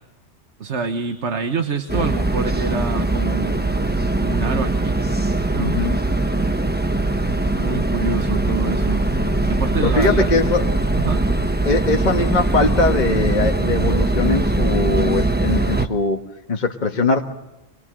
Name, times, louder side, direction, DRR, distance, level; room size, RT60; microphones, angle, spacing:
voice 1, 0.6-3.8 4.2-5.0 5.5-5.8 7.4-9.0 9.5-10.7 11.0-11.2, right 4 dB, 80° right, 6 dB, 1.6 m, -27 dB
sound 1, 1.9-15.9, right 2 dB, 10° right, 1.1 m, -21 dB
voice 2, 5.6-6.0 9.8-10.6 11.6-16.2 16.5-17.2, left 3 dB, 40° left, 2 dB, 1.5 m, -21 dB
26.0 x 22.0 x 7.8 m, 1.0 s
omnidirectional pair, 1.2 m